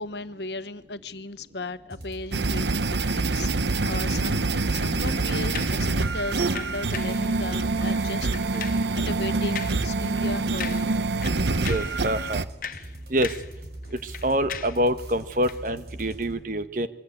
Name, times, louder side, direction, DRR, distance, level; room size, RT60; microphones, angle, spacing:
voice 1, 0.0-3.5 3.8-8.3 8.9-11.0, left 2 dB, 80° left, 12 dB, 1.2 m, -36 dB
sound 1, 1.9-16.3, right 1 dB, 65° right, 7.0 m, -42 dB
sound 2, 2.3-12.4, right 3 dB, 85° right, 0.9 m, -26 dB
sound 3, 5.5-5.8 6.6-7.2 7.8-8.0 8.3-8.9 9.6-9.9 10.2-10.3 10.6-11.0 11.2-12.0 12.4-13.6 13.8-14.8 15.4-15.6, left 8 dB, 50° left, 0.8 m, -38 dB
voice 2, 11.6-12.4 13.1-13.3 14.0-16.9, equal, 50° right, 11 dB, 1.3 m, -26 dB
26.5 x 23.5 x 8.5 m, 0.96 s
head